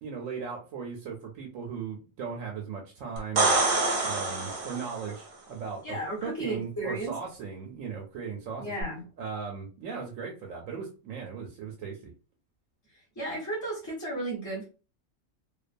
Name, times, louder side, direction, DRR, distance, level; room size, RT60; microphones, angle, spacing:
voice 1, 0.0-3.6 4.0-8.7 9.2-12.1, right 6 dB, 80° right, 0 dB, 1.0 m, -37 dB
sound 1, 3.2-5.1 8.8-8.9, right 3 dB, 50° right, 0.8 m, -26 dB
voice 2, 5.8-7.1 8.6-9.0 13.2-14.6, right 2 dB, 15° left, -5 dB, 0.9 m, -33 dB
2.5 x 2.2 x 2.5 m, 0.35 s
omnidirectional pair, 1.3 m